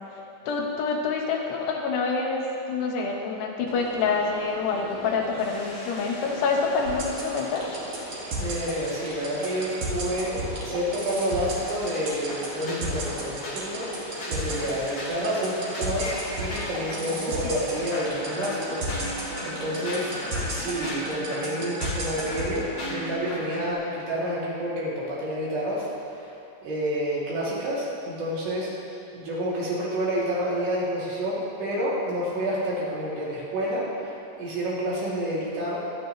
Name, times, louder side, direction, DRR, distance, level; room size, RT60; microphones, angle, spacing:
voice 1, 0.5-7.8 17.1-17.5, left 4 dB, 80° left, 0 dB, 3.3 m, -27 dB
sound 1, 3.7-20.9, equal, 20° left, 1.7 m, -40 dB
sound 2, 6.9-22.6, right 2 dB, 50° right, 2.7 m, -32 dB
voice 2, 8.4-20.1 20.5-26.3 26.6-28.7 29.1-35.8, equal, 75° right, -7 dB, 5.0 m, -29 dB
sound 3, 11.9-17.1 17.7-23.7, left 1 dB, 45° left, 1.6 m, -36 dB
22.5 x 9.9 x 3.2 m, 2.9 s
omnidirectional pair, 4.9 m